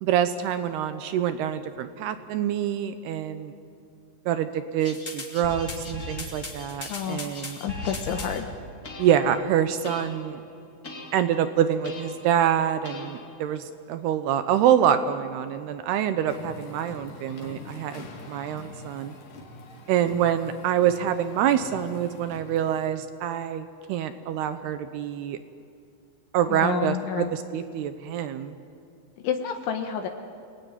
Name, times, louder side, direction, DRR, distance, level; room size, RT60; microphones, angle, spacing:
voice 1, 0.0-3.5 4.3-7.6 9.0-10.4 11.1-19.1 19.9-25.4 26.3-28.6, right 9 dB, 80° right, 10 dB, 2.4 m, -26 dB
sound 1, 4.8-8.4 8.8-9.4 9.8-10.3 10.8-11.4 11.8-12.3 12.8-13.4, left 2 dB, 25° left, 2.6 m, -38 dB
voice 2, 6.9-8.5 26.5-27.3 29.2-30.1, left 8 dB, 75° left, 5 dB, 3.5 m, -30 dB
sound 2, 16.2-22.9, left 2 dB, 45° left, 3.7 m, -44 dB
29.0 x 20.5 x 9.7 m, 2.6 s
omnidirectional pair, 5.7 m